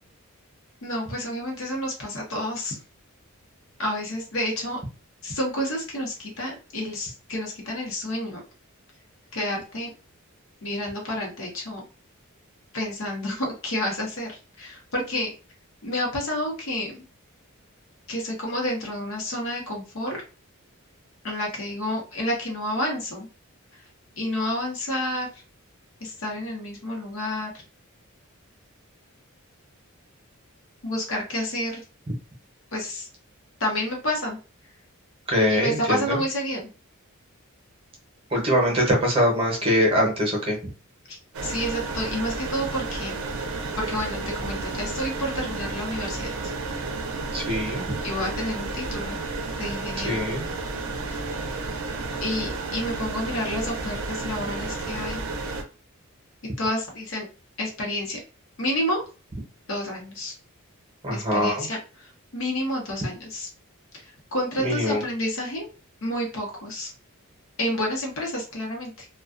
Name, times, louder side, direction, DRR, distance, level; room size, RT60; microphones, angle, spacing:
voice 1, 0.8-2.8 3.8-4.8 5.2-8.4 9.3-9.9 10.6-11.8 12.7-15.3 15.8-17.0 18.1-20.2 21.2-23.3 23.7-23.8 24.2-25.4 26.0-27.6 30.8-31.8 32.7-33.1 33.6-34.4 35.5-36.7 41.1-41.2 41.4-43.3 43.8-46.5 48.0-49.2 49.5-50.2 51.1-51.3 52.2-55.2 56.6-57.3 57.6-58.2 58.6-59.0 59.7-60.3 61.1-63.5 63.9-65.7 66.0-66.9 67.6-69.1, left 1 dB, 60° left, 0 dB, 0.8 m, -29 dB
voice 2, 35.3-36.2 38.3-40.6 47.3-47.8 50.0-50.4 61.0-61.7 64.6-65.0, equal, 25° right, -2 dB, 0.8 m, -23 dB
sound 1, 41.3-55.6, right 3 dB, 65° right, 0.5 m, -32 dB
2.3 x 2.3 x 2.4 m, 0.34 s
head